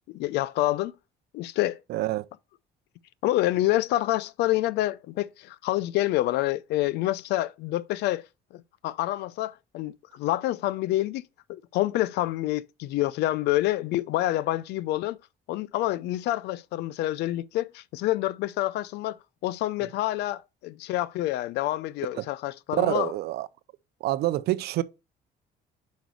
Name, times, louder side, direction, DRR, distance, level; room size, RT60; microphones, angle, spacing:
voice 1, 0.1-0.9 1.3-1.8 3.2-8.2 8.5-15.2 15.5-23.1, left 15 dB, 80° left, 0.5 m, -27 dB
voice 2, 1.9-2.2 22.2-22.3 22.7-23.5 24.0-24.8, right 16 dB, 75° right, 0.6 m, -26 dB
5.2 x 5.0 x 6.1 m
cardioid pair, 110°, 17 cm